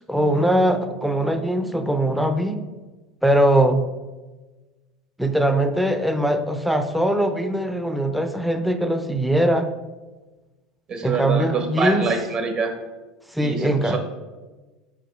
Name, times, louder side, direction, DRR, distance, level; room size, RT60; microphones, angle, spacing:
voice 1, 0.0-2.6 3.2-3.8 5.2-9.7 11.0-12.0 13.3-14.0, right 1 dB, ahead, 7 dB, 0.5 m, -21 dB
voice 2, 10.9-12.7 13.4-14.0, right 4 dB, 40° right, 4 dB, 1.3 m, -25 dB
4.8 x 4.8 x 4.5 m, 1.2 s
hypercardioid pair, 90°, 2 cm